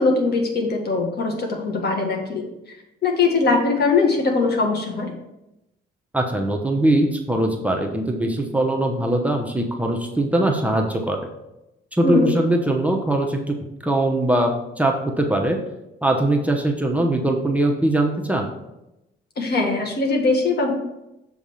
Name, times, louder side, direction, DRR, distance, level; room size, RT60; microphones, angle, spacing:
voice 1, 0.0-2.8 3.0-5.2 12.0-12.3 19.4-20.7, left 3 dB, 55° left, 2 dB, 1.6 m, -21 dB
voice 2, 6.1-11.2 11.9-13.5 13.8-15.6 16.0-18.5, right 1 dB, 5° right, 1 dB, 0.9 m, -21 dB
7.1 x 3.6 x 5.6 m, 0.91 s
cardioid pair, 90°, 20 cm